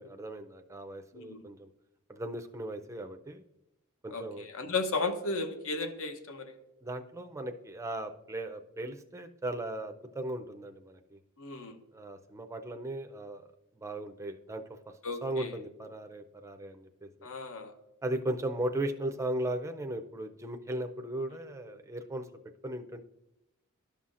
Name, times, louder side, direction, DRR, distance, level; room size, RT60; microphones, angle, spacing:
voice 1, 0.0-1.7 2.1-3.4 4.0-4.4 6.8-11.2 11.9-13.4 13.8-14.6 15.2-17.3 18.0-22.2 22.6-23.0, right 1 dB, 15° right, 6 dB, 0.4 m, -37 dB
voice 2, 4.1-6.6 11.4-11.8 15.0-15.5 17.2-17.7, left 3 dB, 65° left, 8 dB, 0.8 m, -34 dB
11.5 x 5.6 x 2.5 m, 0.90 s
head